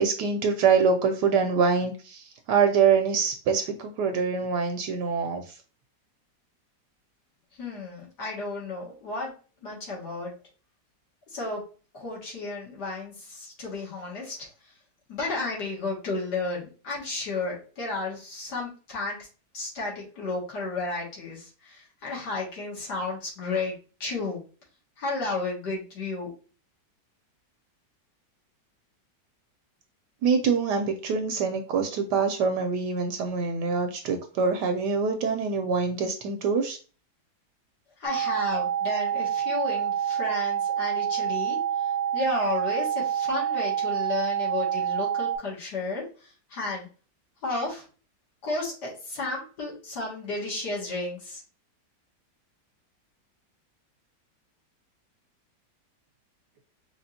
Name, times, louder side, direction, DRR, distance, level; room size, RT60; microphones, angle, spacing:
voice 1, 0.0-5.4 30.2-36.8, right 5 dB, 75° right, 6 dB, 1.1 m, -25 dB
voice 2, 7.5-9.3 9.6-10.4 11.3-11.7 11.9-14.8 15.1-19.3 19.5-24.4 25.0-26.3 38.0-46.9 47.4-47.9 48.4-51.4, left 3 dB, 65° left, -4 dB, 2.4 m, -33 dB
sound 1, 38.0-45.4, right 9 dB, 25° right, 0.4 m, -27 dB
4.9 x 3.3 x 2.7 m, 0.36 s
omnidirectional pair, 2.0 m